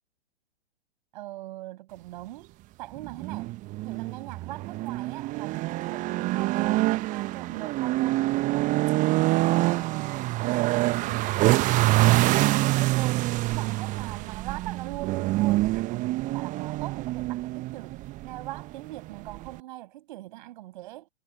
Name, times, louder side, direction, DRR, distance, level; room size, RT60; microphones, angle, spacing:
voice 1, 1.1-2.5 2.8-3.5 3.8-8.9 9.5-21.1, right 16 dB, 45° right, 7.8 m, -41 dB
sound 1, 3.0-19.6, right 19 dB, 25° right, 1.2 m, -26 dB
figure-of-eight pair, 115°, 34 cm